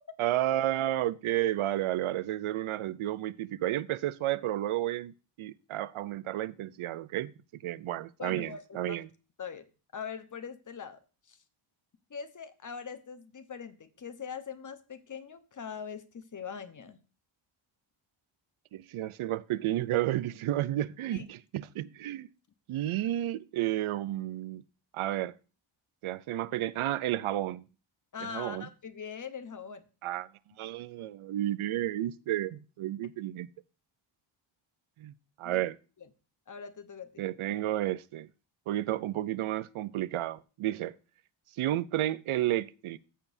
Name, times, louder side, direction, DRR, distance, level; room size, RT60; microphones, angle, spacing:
voice 1, 0.2-7.3 7.6-9.1 18.7-22.3 22.7-24.6 24.9-25.3 26.0-27.6 28.2-28.7 30.0-30.3 30.6-33.5 35.0-35.1 35.4-35.7 37.2-38.3 38.7-40.9 41.6-43.0, right 13 dB, 80° right, 0.6 m, -31 dB
voice 2, 8.2-9.0 9.4-9.7 9.9-11.0 11.3-11.4 12.1-17.0 21.1-21.2 28.1-29.8 35.4-35.6 36.0-36.1 36.5-37.2, left 6 dB, 40° left, 1.0 m, -42 dB
15.5 x 6.9 x 2.7 m
wide cardioid pair, 115°, 49 cm